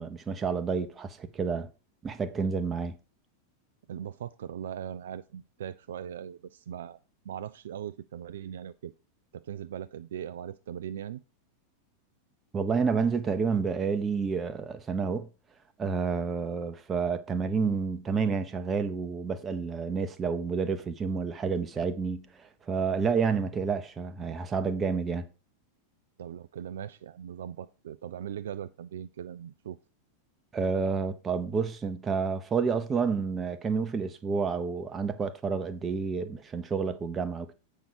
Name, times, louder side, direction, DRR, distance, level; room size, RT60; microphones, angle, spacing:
voice 1, 0.0-1.7 2.0-2.9 12.5-15.3 15.8-25.3 30.5-37.5, right 5 dB, 20° right, 0.8 m, -29 dB
voice 2, 3.9-7.0 7.2-8.9 9.3-11.2 26.2-29.8, right 9 dB, 60° right, 0.3 m, -39 dB
8.1 x 5.5 x 4.8 m
figure-of-eight pair, 90°, 0 cm